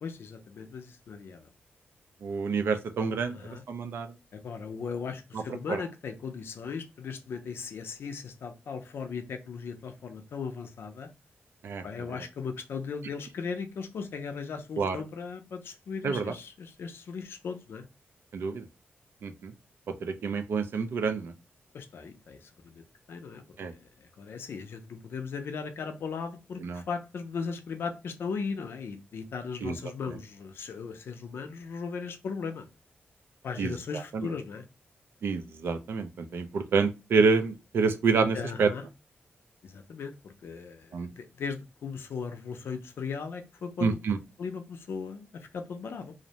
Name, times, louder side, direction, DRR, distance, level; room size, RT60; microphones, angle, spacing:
voice 1, 0.0-1.5 3.2-3.6 4.3-11.1 11.8-17.8 21.7-22.8 23.1-32.7 33.4-34.6 38.3-38.8 39.6-44.0 44.4-46.1, left 5 dB, 65° left, 7 dB, 0.4 m, -37 dB
voice 2, 2.2-3.4 3.7-4.1 5.7-5.8 11.6-11.8 14.8-15.0 16.0-16.3 18.3-18.6 19.2-19.5 20.0-21.3 23.6-23.7 26.6-26.8 29.6-29.7 33.6-33.7 34.1-34.3 35.2-38.7 40.9-41.1 43.8-44.2, right 4 dB, 65° right, 9 dB, 0.4 m, -27 dB
2.5 x 2.0 x 2.7 m, 0.28 s
wide cardioid pair, 180°, 4 cm